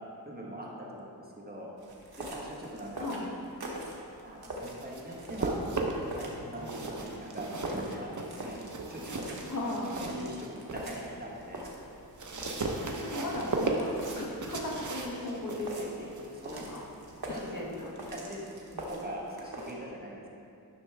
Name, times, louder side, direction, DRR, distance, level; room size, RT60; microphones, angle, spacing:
voice 1, 0.2-1.7 2.2-3.1 4.2-5.6 6.1-8.1 8.4-9.2 9.6-11.7 13.1-13.2 16.3-16.8 17.2-17.5 18.1-20.3, right 1 dB, 25° right, -3 dB, 1.3 m, -42 dB
sound 1, 1.8-19.7, right 1 dB, 75° right, 1.3 m, -44 dB
sound 2, 4.4-6.2 6.6-10.9 11.3-17.9, right 3 dB, 50° right, 0.8 m, -37 dB
voice 2, 9.5-10.0 13.0-16.2 16.5-16.9 17.3-17.9, left 1 dB, 55° left, -2 dB, 1.3 m, -37 dB
10.5 x 6.2 x 3.4 m, 2.6 s
wide cardioid pair, 75°, 39 cm